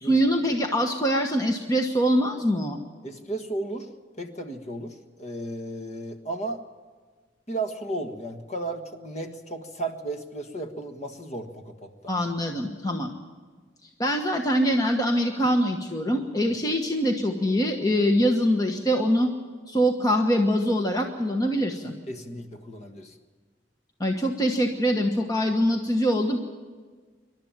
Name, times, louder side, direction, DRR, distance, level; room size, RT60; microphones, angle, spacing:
voice 1, 0.0-2.8 12.1-13.1 13.8-19.3 19.7-21.9 24.0-26.4, equal, 20° left, 3 dB, 1.2 m, -24 dB
voice 2, 3.0-3.9 4.2-6.6 7.5-12.1 22.1-23.1, right 2 dB, 40° left, 5 dB, 1.6 m, -34 dB
26.5 x 12.0 x 9.0 m, 1.5 s
head